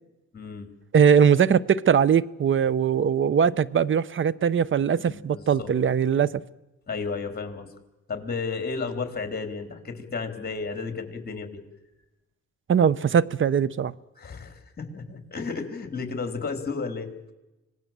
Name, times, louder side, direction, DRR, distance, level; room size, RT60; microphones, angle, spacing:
voice 1, 0.3-0.7 5.0-5.7 6.9-7.7 8.1-11.6 14.2-17.3, left 4 dB, 30° left, 6 dB, 3.9 m, -33 dB
voice 2, 0.9-6.4 12.7-13.9, right 7 dB, 40° right, 20 dB, 0.8 m, -21 dB
25.5 x 19.0 x 7.6 m, 1.0 s
cardioid pair, 90°, 30 cm